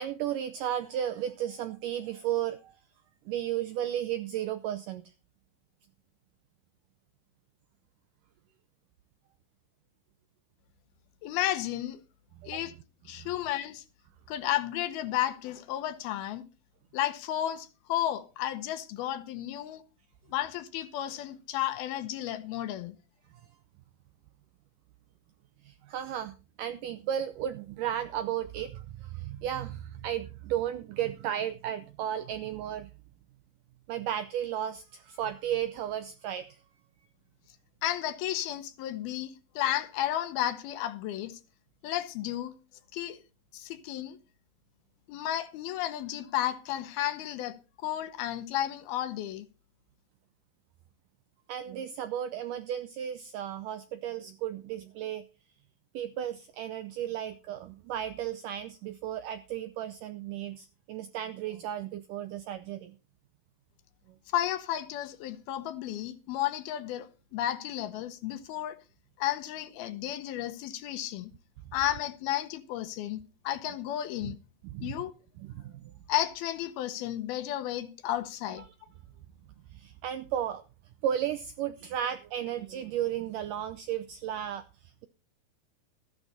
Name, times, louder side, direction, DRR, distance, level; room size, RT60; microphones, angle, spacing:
voice 1, 0.0-2.7 3.3-5.1 12.4-12.6 13.2-13.3 23.4-23.5 25.6-32.9 33.9-36.6 51.5-55.2 55.9-63.0 74.7-74.9 75.4-75.9 79.7-80.6 81.0-85.1, right 10 dB, 85° right, 1.9 m, -34 dB
voice 2, 11.2-12.0 12.5-12.7 13.1-13.8 14.3-16.5 16.9-19.8 20.3-23.0 37.8-41.4 41.8-42.5 42.9-43.2 43.5-44.2 45.1-49.4 64.3-67.1 67.3-68.8 69.2-71.3 71.7-74.4 74.8-75.1 76.1-78.7, left 12 dB, 75° left, 2.7 m, -33 dB
14.5 x 11.0 x 4.1 m
omnidirectional pair, 4.6 m